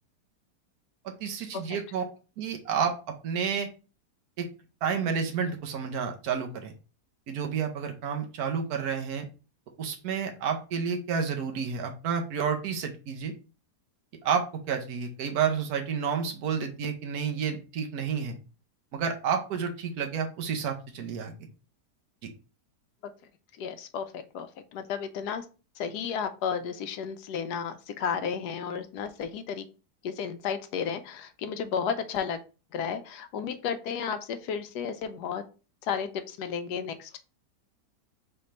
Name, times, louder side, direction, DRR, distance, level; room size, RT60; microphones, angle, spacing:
voice 1, 1.0-2.0 2.4-2.9 3.2-3.7 4.4-4.5 4.8-6.7 7.3-9.3 9.8-13.3 14.2-18.4 18.9-21.5, right 6 dB, 65° right, 4 dB, 1.3 m, -30 dB
voice 2, 23.6-25.4 25.8-29.7 30.0-32.4 32.7-35.4 35.8-37.2, left 7 dB, 80° left, 9 dB, 1.1 m, -33 dB
3.7 x 3.4 x 4.2 m, 0.34 s
omnidirectional pair, 1.8 m